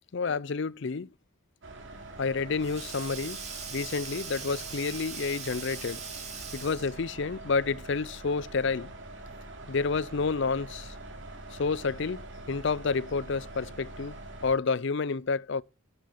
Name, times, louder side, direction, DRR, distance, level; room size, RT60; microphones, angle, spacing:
voice 1, 0.1-1.1 2.2-3.4 3.7-6.0 6.5-8.9 9.7-10.9 11.6-14.1 14.4-15.6, left 4 dB, 55° left, 0.5 m, -29 dB
sound 1, 1.6-14.6, right 2 dB, 55° right, 3.0 m, -44 dB
Sink (filling or washing), 2.0-7.1, right 6 dB, 30° right, 3.3 m, -41 dB
10.5 x 9.5 x 5.5 m
head